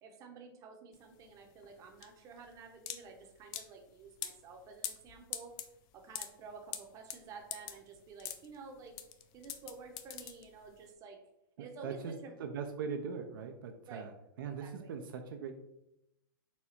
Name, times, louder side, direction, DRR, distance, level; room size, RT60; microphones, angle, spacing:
voice 1, 0.0-5.5 5.9-8.9 9.3-11.2 11.6-12.4 13.9-14.1 14.4-14.9, right 4 dB, 25° right, 3 dB, 0.7 m, -51 dB
sound 1, 0.9-10.9, left 11 dB, 35° left, 0.4 m, -45 dB
voice 2, 11.6-12.1 12.4-14.1 14.4-15.5, right 6 dB, 65° right, 5 dB, 0.5 m, -40 dB
4.2 x 2.3 x 4.2 m, 0.84 s
hypercardioid pair, 135°, 12 cm